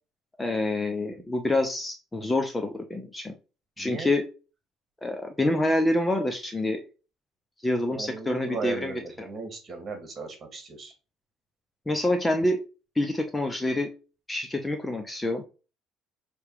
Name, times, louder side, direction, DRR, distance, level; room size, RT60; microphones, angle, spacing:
voice 1, 0.4-3.3 3.8-4.2 5.0-6.8 7.6-9.3 11.9-12.6 13.0-13.9 14.3-15.4, left 1 dB, 10° left, 5 dB, 0.9 m, -27 dB
voice 2, 3.8-4.1 7.9-10.9, right 4 dB, 35° right, 5 dB, 2.4 m, -36 dB
6.4 x 3.4 x 4.9 m, 0.33 s
cardioid pair, 115°, 0 cm